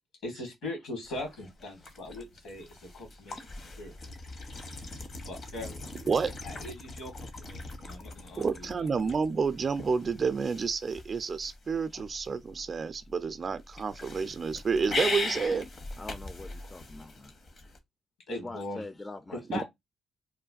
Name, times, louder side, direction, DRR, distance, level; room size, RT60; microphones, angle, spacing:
voice 1, 0.2-3.4 3.8-4.0 5.3-5.9 6.4-8.9 18.3-18.8 19.3-19.6, left 2 dB, 80° left, 1.5 m, -40 dB
sound 1, 1.0-17.8, left 3 dB, 55° left, 0.8 m, -41 dB
voice 2, 8.4-15.6, right 5 dB, 45° right, 0.4 m, -29 dB
voice 3, 16.0-17.3 18.3-19.6, left 2 dB, 25° left, 0.4 m, -44 dB
3.1 x 2.2 x 2.3 m
hypercardioid pair, 50°, 0 cm